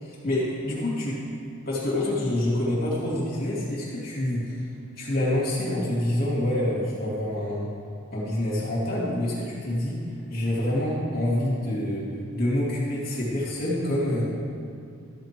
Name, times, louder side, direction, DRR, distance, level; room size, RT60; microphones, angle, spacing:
voice 1, 0.0-1.2 1.7-4.7 5.0-7.7 8.1-10.0 10.3-14.2, left 1 dB, 45° left, -6 dB, 2.4 m, -27 dB
13.0 x 8.0 x 4.6 m, 2.4 s
head